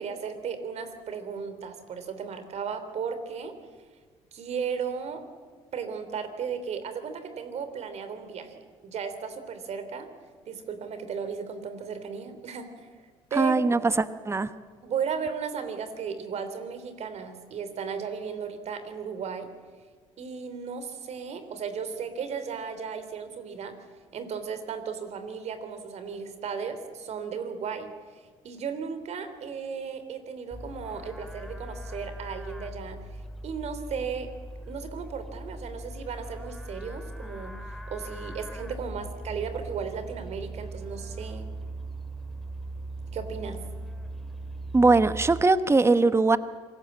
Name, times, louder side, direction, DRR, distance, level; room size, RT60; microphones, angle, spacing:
voice 1, 0.0-3.5 4.3-5.2 5.7-10.1 10.5-12.9 13.3-13.6 14.8-19.5 20.2-23.7 24.1-34.3 34.6-41.5 43.1-43.6, right 6 dB, 55° right, 10 dB, 3.4 m, -35 dB
voice 2, 13.4-14.5 44.7-46.4, right 3 dB, 20° right, 13 dB, 1.2 m, -21 dB
Livestock farm animals working animals, 30.5-45.4, right 1 dB, ahead, 2.8 m, -39 dB
26.5 x 19.0 x 7.5 m, 1.5 s
hypercardioid pair, 65°, 13 cm